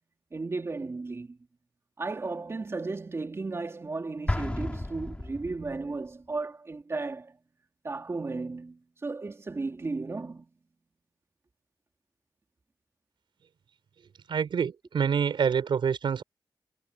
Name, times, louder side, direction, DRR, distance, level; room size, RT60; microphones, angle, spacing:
voice 1, 0.3-1.4 2.0-7.4 7.8-10.5, right 3 dB, 35° right, 3.3 m, -35 dB
Explosion, 4.3-6.0, left 1 dB, 15° left, 6.5 m, -32 dB
voice 2, 14.3-16.2, right 7 dB, 85° right, 4.9 m, -26 dB
wide cardioid pair, 125°, 8 cm